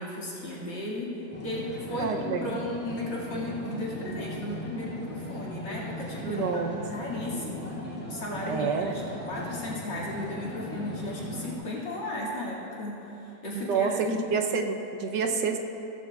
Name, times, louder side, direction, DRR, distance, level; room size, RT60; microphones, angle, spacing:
voice 1, 0.0-7.7 8.1-14.2, left 1 dB, 75° left, -6 dB, 2.8 m, -35 dB
sound 1, 1.3-11.6, equal, 10° left, 2.2 m, -38 dB
voice 2, 1.9-2.6 6.2-6.8 7.3-7.4 8.5-9.0 13.5-15.6, right 5 dB, 70° right, 4 dB, 1.3 m, -28 dB
15.5 x 15.0 x 2.3 m, 3.0 s
omnidirectional pair, 2.0 m